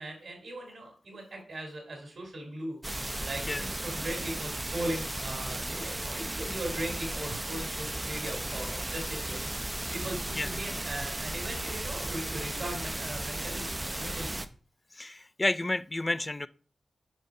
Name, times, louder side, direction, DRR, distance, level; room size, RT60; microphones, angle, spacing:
voice 1, 0.0-2.8 3.2-9.5 9.9-14.4, right 1 dB, 60° right, 2.5 m, -39 dB
sound 1, 2.8-14.5, right 1 dB, 20° right, 0.6 m, -35 dB
voice 2, 14.9-16.5, left 2 dB, 25° left, 0.4 m, -30 dB
5.4 x 5.3 x 4.7 m
cardioid pair, 50°, 0 cm